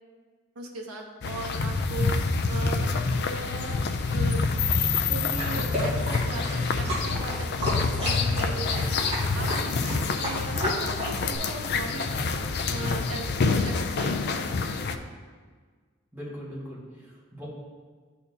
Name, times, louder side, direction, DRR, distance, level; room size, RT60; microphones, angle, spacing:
voice 1, 0.6-2.2 2.5-3.8 4.1-4.4 5.1-9.0 9.3-12.3 12.7-14.9, right 3 dB, 85° right, 0 dB, 0.8 m, -38 dB
sound 1, 1.2-15.0, left 4 dB, 50° left, 0.4 m, -27 dB
sound 2, 5.4-11.4, equal, 30° right, 2.1 m, -32 dB
voice 2, 9.8-10.2 16.1-17.5, equal, 10° right, -7 dB, 1.7 m, -40 dB
11.5 x 4.2 x 2.7 m, 1.5 s
head